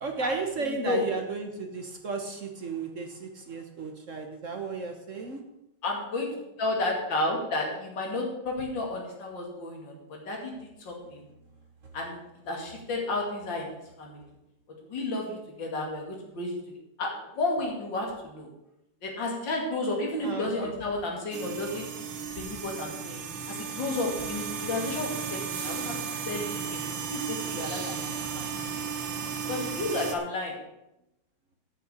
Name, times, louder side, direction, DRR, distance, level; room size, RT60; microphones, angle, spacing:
voice 1, 0.0-5.4 20.2-20.7 28.3-28.5 28.7-29.2, right 4 dB, 45° right, 4 dB, 1.4 m, -34 dB
voice 2, 0.6-1.0 5.8-6.3 6.6-10.5 10.8-11.2 11.9-12.2 12.5-13.7 14.0-14.2 14.9-16.6 17.0-17.1 17.4-18.5 19.0-21.9 22.4-25.9 26.3-26.8 27.1-28.5 29.5-30.6, left 2 dB, 70° left, 0 dB, 3.1 m, -32 dB
sound 1, 21.3-30.2, right 6 dB, 85° right, 2.0 m, -35 dB
8.8 x 6.9 x 8.2 m, 0.87 s
omnidirectional pair, 2.1 m